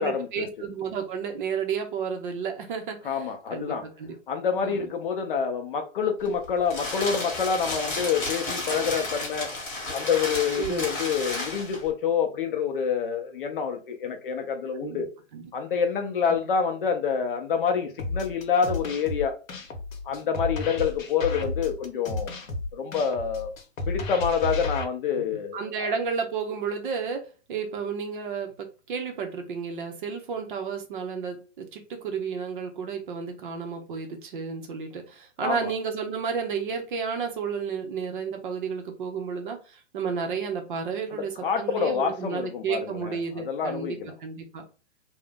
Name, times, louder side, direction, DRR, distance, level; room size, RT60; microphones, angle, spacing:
voice 1, 0.0-3.2 3.5-4.1 4.6-4.9 10.6-10.9 14.8-15.1 15.3-15.4 16.3-16.4 25.2-28.5 28.9-44.6, right 6 dB, 40° right, 0.6 m, -32 dB
voice 2, 3.0-3.9 4.3-9.5 9.9-15.1 15.5-19.4 20.0-22.3 22.7-23.5 23.9-25.9 35.4-35.7 41.4-44.1, left 6 dB, 45° left, 0.6 m, -27 dB
sound 1, 6.2-11.9, left 2 dB, 20° left, 1.1 m, -32 dB
sound 2, 18.0-24.8, left 2 dB, 80° left, 0.9 m, -32 dB
2.6 x 2.1 x 3.4 m
hypercardioid pair, 135°, 40 cm